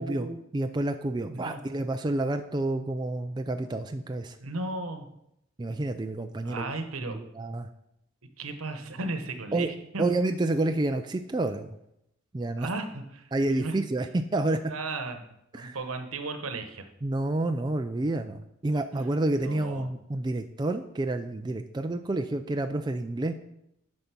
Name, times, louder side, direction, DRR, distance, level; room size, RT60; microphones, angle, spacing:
voice 1, 0.0-0.4 1.3-1.6 4.4-5.1 6.4-7.2 8.4-10.0 12.6-13.8 14.7-15.2 15.5-16.9 19.4-19.9, right 2 dB, 85° right, 8 dB, 1.0 m, -35 dB
voice 2, 0.5-4.4 5.6-6.7 7.0-7.7 9.5-9.7 10.0-11.7 12.3-12.7 13.3-14.6 15.5-15.8 17.0-23.3, right 2 dB, 20° right, 7 dB, 0.3 m, -29 dB
8.0 x 5.3 x 5.8 m, 0.79 s
head